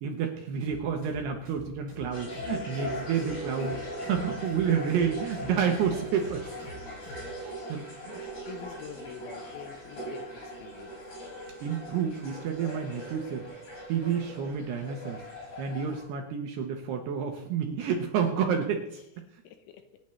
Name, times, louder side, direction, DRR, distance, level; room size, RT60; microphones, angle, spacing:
voice 1, 0.0-3.8 4.1-6.5 7.4-8.2 11.6-13.5 13.9-15.2 15.6-19.3, right 7 dB, 75° right, 3 dB, 2.6 m, -30 dB
sound 1, 0.6-7.3, left 1 dB, 20° right, 6.4 m, -46 dB
sound 2, 2.1-16.0, right 1 dB, 45° left, 5.8 m, -40 dB
voice 2, 8.1-11.0 19.4-19.9, left 9 dB, 75° left, 7 dB, 3.1 m, -46 dB
26.0 x 10.0 x 3.2 m, 0.83 s
omnidirectional pair, 5.8 m